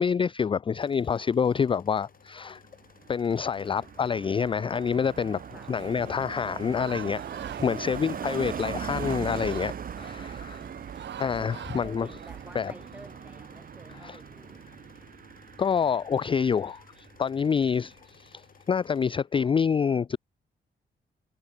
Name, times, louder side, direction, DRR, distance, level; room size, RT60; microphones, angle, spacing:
voice 1, 0.0-2.6 3.1-5.4 5.7-10.6 11.2-12.1 12.5-12.7 14.0-14.2 15.6-20.2, left 6 dB, 30° left, 0.4 m, -27 dB
sound 1, 0.7-19.2, left 7 dB, 50° left, 5.4 m, -57 dB
Car passing by, 2.7-17.4 17.7-18.0, right 8 dB, 50° right, 1.4 m, -40 dB
sound 2, 5.8-12.6, right 10 dB, 85° right, 3.3 m, -44 dB
voice 2, 7.8-8.4 11.7-14.7, right 1 dB, 10° right, 6.3 m, -51 dB
wide cardioid pair, 145°, 18 cm